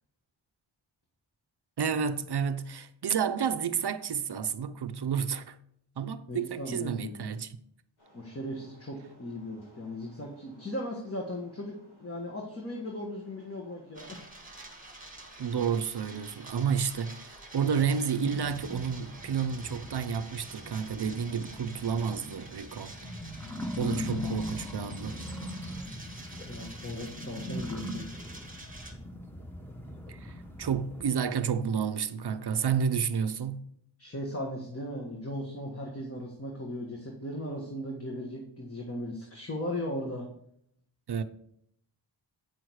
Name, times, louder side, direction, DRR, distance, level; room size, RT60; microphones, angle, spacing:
voice 1, 1.8-5.6 6.0-7.6 15.4-22.9 23.8-25.2 30.1-33.7 41.1-41.2, right 7 dB, 55° right, 0.6 m, -30 dB
voice 2, 6.3-7.3 8.1-14.2 26.5-28.1 34.0-40.3, left 1 dB, 30° left, 1.4 m, -37 dB
sound 1, 8.0-23.3, equal, 90° left, 4.4 m, -60 dB
sound 2, 13.9-28.9, right 2 dB, 15° right, 1.7 m, -48 dB
sound 3, 18.2-31.0, left 1 dB, 5° left, 1.2 m, -40 dB
9.1 x 6.3 x 4.6 m
wide cardioid pair, 95°, 47 cm